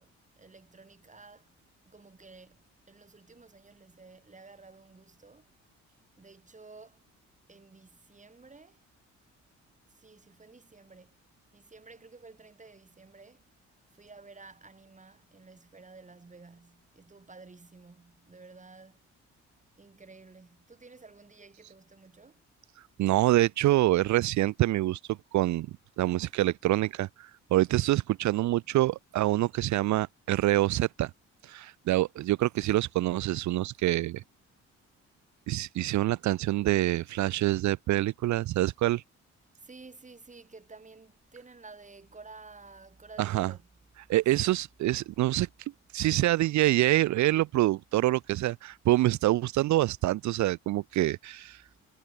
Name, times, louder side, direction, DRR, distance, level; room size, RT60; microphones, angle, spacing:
voice 1, 0.0-1.5 1.9-5.5 6.2-7.0 7.5-8.9 9.9-11.2 11.5-13.5 13.9-19.0 19.8-22.5 39.6-43.7 44.4-44.5, right 3 dB, 25° right, 7.1 m, -52 dB
voice 2, 23.0-25.7 26.0-31.1 31.4-34.2 35.5-39.0 43.2-43.5 44.1-45.5 45.9-51.6, right 16 dB, 70° right, 0.6 m, -26 dB
cardioid pair, 90°, 30 cm